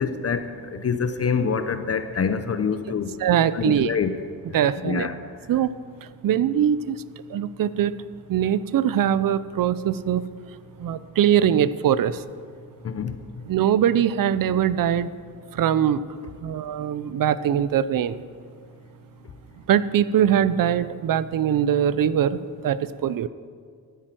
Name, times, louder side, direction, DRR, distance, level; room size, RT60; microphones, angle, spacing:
voice 1, 0.0-3.1 3.5-4.2 4.8-5.1 12.8-13.4, left 6 dB, 35° left, 10 dB, 0.7 m, -26 dB
voice 2, 3.2-3.9 4.5-5.1 5.5-5.7 6.0-7.0 7.3-7.9 8.3-10.2 10.8-12.2 13.5-15.1 15.5-16.0 16.4-18.2 19.7-23.3, right 9 dB, 55° right, 16 dB, 0.6 m, -22 dB
13.5 x 10.0 x 7.7 m, 2.1 s
cardioid pair, 125°, 40 cm